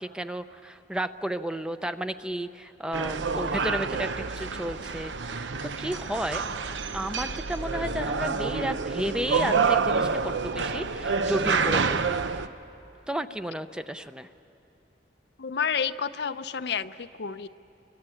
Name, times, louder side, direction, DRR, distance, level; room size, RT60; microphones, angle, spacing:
voice 1, 0.0-6.4 6.9-12.2 13.1-14.3, equal, 5° right, 10 dB, 0.6 m, -33 dB
sound 1, 2.9-12.5, right 5 dB, 80° right, 0.8 m, -28 dB
voice 2, 15.4-17.5, left 6 dB, 65° left, 11 dB, 0.6 m, -30 dB
28.0 x 23.0 x 9.1 m, 2.8 s
head